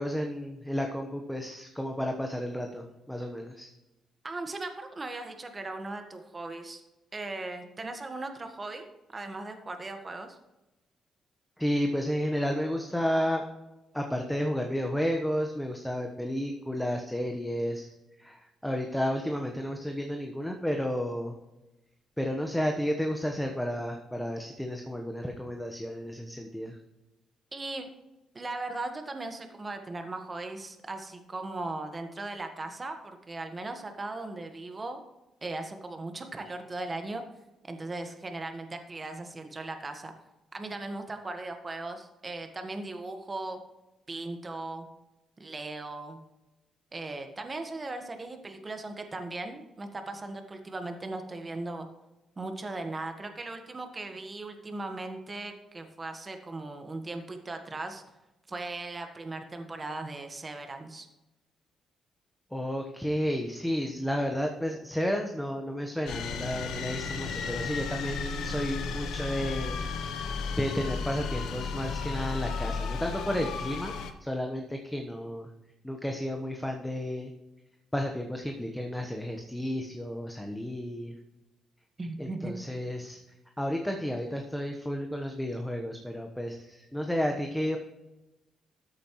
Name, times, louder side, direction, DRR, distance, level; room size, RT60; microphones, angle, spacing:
voice 1, 0.0-3.7 11.6-13.5 13.9-17.9 18.2-21.4 22.2-26.8 62.5-69.8 70.6-73.9 74.2-75.5 75.8-77.3 77.9-81.1 82.2-83.2 83.6-87.8, equal, 5° left, 3 dB, 1.1 m, -32 dB
voice 2, 4.2-6.8 7.1-10.4 27.5-27.9 28.3-35.0 35.4-37.2 37.7-40.1 40.5-43.6 44.1-44.9 45.4-46.2 46.9-51.9 52.4-58.0 58.5-61.1 82.0-82.6, right 2 dB, 25° right, 6 dB, 1.5 m, -38 dB
sound 1, 66.1-74.1, left 5 dB, 80° left, 1.1 m, -34 dB
13.5 x 8.5 x 3.1 m, 1.0 s
cardioid pair, 90°, 0 cm